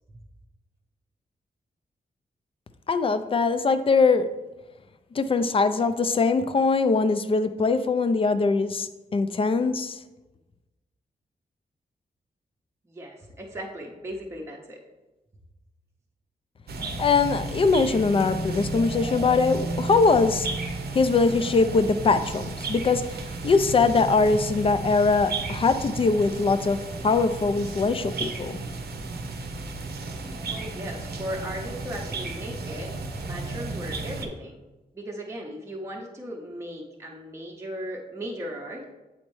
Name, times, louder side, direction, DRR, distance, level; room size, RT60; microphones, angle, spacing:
voice 1, 2.9-4.3 5.1-10.0 17.0-20.5 20.9-26.8 27.0-28.6, left 4 dB, 35° left, 10 dB, 0.4 m, -22 dB
voice 2, 12.9-14.8 30.5-32.9 33.3-34.6 34.9-38.9, equal, 15° right, -1 dB, 0.7 m, -37 dB
sound 1, 16.7-34.3, right 3 dB, 75° right, 0.7 m, -33 dB
7.7 x 4.2 x 3.1 m, 1.1 s
wide cardioid pair, 125°, 17 cm